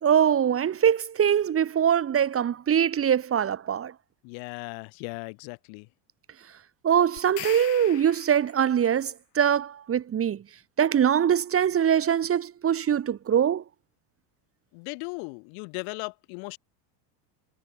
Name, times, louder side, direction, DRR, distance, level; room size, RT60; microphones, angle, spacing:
voice 1, 0.0-3.9 6.8-10.4 10.8-13.6, right 9 dB, 25° right, 2.4 m, -23 dB
voice 2, 4.2-5.9 14.7-16.6, left 40 dB or more, 65° left, 6.6 m, -37 dB
sound 1, 7.2-8.7, left 19 dB, 85° left, 7.1 m, -40 dB
supercardioid pair, 130°, 48 cm